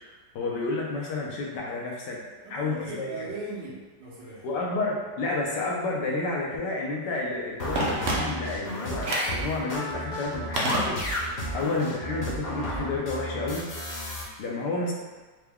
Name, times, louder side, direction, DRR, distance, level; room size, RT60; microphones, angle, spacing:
voice 1, 0.0-2.2 2.5-3.1 4.4-13.7 14.4-14.9, left 3 dB, 80° left, -2 dB, 1.3 m, -31 dB
voice 2, 2.4-4.5 11.5-11.7, right 2 dB, 85° right, -7 dB, 1.6 m, -39 dB
sound 1, 7.6-14.2, equal, 60° left, 1.2 m, -33 dB
Telephone, 7.8-8.6 9.0-9.4 10.6-11.4 11.7-11.8, right 1 dB, 70° right, 0.6 m, -29 dB
4.6 x 2.2 x 3.4 m, 1.3 s
omnidirectional pair, 1.9 m